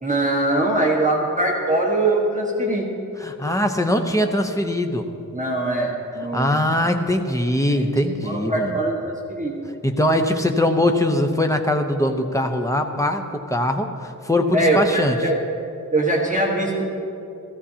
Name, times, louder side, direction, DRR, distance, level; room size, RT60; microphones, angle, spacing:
voice 1, 0.0-2.8 5.3-6.7 7.6-7.9 8.2-9.5 14.5-15.3 15.9-17.0, right 2 dB, 20° right, -2 dB, 1.5 m, -22 dB
voice 2, 3.2-5.1 6.3-8.8 9.8-15.2, left 1 dB, 10° left, 4 dB, 0.8 m, -21 dB
16.5 x 14.5 x 2.8 m, 2.7 s
wide cardioid pair, 125°, 34 cm